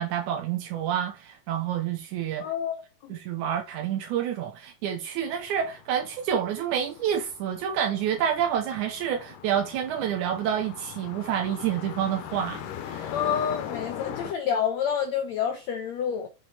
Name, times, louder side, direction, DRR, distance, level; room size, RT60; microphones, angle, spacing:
voice 1, 0.0-2.5 3.1-13.2, right 9 dB, 75° right, 2.0 m, -28 dB
voice 2, 2.4-2.7 3.0-3.1 13.1-16.3, left 8 dB, 90° left, 1.5 m, -28 dB
sound 1, 5.2-14.3, left 9 dB, 75° left, 2.3 m, -40 dB
7.0 x 6.2 x 4.2 m
omnidirectional pair, 4.1 m